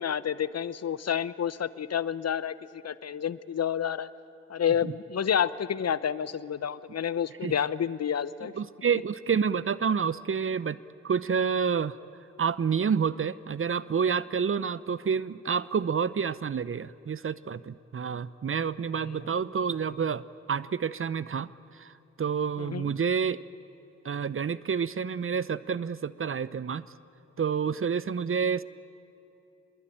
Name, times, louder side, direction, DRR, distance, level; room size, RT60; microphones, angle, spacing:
voice 1, 0.0-4.1 4.5-8.5 18.9-19.2 22.6-22.9, left 8 dB, 50° left, 16 dB, 0.9 m, -29 dB
voice 2, 8.6-10.8 11.0-12.0 12.4-20.2 20.5-21.5 21.8-21.9 22.2-23.4 24.0-26.9 27.4-28.6, right 6 dB, 40° right, 17 dB, 0.8 m, -28 dB
24.0 x 22.0 x 8.9 m, 2.7 s
hypercardioid pair, 40°, 34 cm